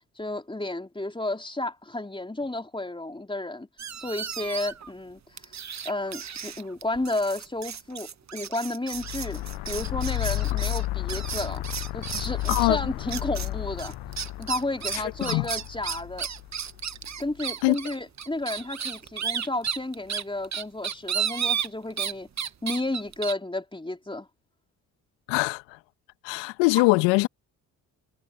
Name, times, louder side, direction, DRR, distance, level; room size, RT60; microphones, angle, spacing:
voice 1, 0.2-3.7 4.0-5.5 5.8-11.6 11.9-13.9 14.4-16.3 17.2-22.3 22.6-24.3, left 2 dB, 10° left, 3.9 m, -32 dB
sound 1, 3.8-4.9 5.4-12.7 13.1-13.5 13.8-22.1 22.4-23.3, right 8 dB, 40° right, 1.5 m, -33 dB
sound 2, 8.9-17.3, left 17 dB, 60° left, 0.9 m, -32 dB
voice 2, 25.3-25.6 26.2-27.3, left 24 dB, 75° left, 1.7 m, -22 dB
hypercardioid pair, 40°, 44 cm